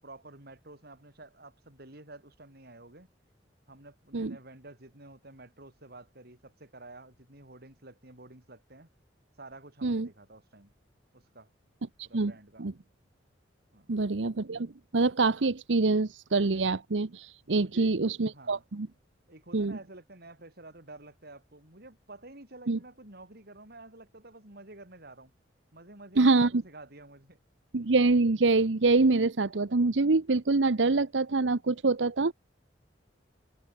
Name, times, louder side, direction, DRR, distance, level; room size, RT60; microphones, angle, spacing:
voice 1, 0.0-3.1 3.7-8.9 9.4-10.7 11.1-11.5 12.0-12.7 13.7-13.9 17.4-17.9 18.3-18.6 19.3-25.3 25.7-27.4, right 2 dB, 60° right, 6.5 m, -50 dB
voice 2, 12.0-12.3 12.6-12.7 13.9-18.9 19.5-19.8 22.7-22.8 26.2-26.6 27.7-32.3, right 3 dB, 85° right, 0.9 m, -25 dB
head